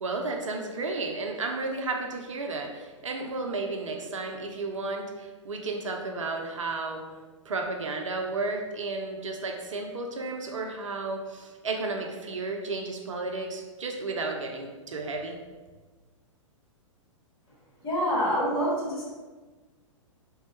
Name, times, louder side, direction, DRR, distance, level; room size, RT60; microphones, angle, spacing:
voice 1, 0.0-7.0 7.5-15.4, right 3 dB, 70° right, 3 dB, 0.5 m, -33 dB
voice 2, 17.8-19.1, equal, 30° left, -7 dB, 1.2 m, -26 dB
3.4 x 2.2 x 2.7 m, 1.3 s
figure-of-eight pair, 110°, 17 cm